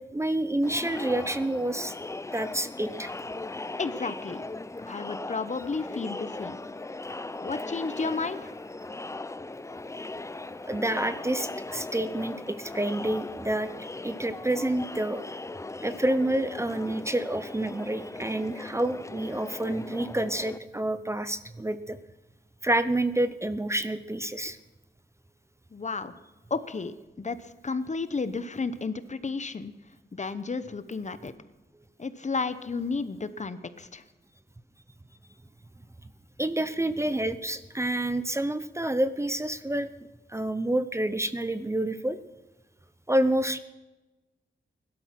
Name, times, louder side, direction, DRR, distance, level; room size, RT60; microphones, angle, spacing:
voice 1, 0.0-1.9 2.3-3.1 10.7-13.7 14.0-15.2 15.8-22.0 22.6-24.6 36.4-39.9 40.3-42.2 43.1-43.6, right 1 dB, 15° right, 12 dB, 0.7 m, -28 dB
Crowd, 0.6-20.6, left 2 dB, 15° left, 0.5 m, -38 dB
voice 2, 3.8-4.4 4.9-6.6 7.4-8.5 25.7-26.1 26.5-29.7 30.1-31.3 32.0-34.0, left 4 dB, 40° left, 12 dB, 1.0 m, -32 dB
17.0 x 12.0 x 5.9 m, 1.1 s
cardioid pair, 75°, 18 cm